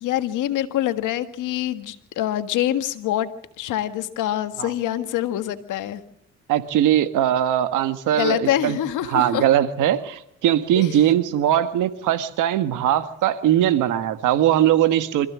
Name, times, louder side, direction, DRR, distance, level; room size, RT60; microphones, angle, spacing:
voice 1, 0.0-3.3 3.6-6.0 8.1-9.5 10.8-10.9, left 12 dB, 90° left, 10 dB, 1.7 m, -25 dB
voice 2, 6.5-8.8 9.1-15.3, right 11 dB, 90° right, 10 dB, 1.6 m, -20 dB
25.5 x 15.0 x 7.4 m, 0.77 s
cardioid pair, 90°, 30 cm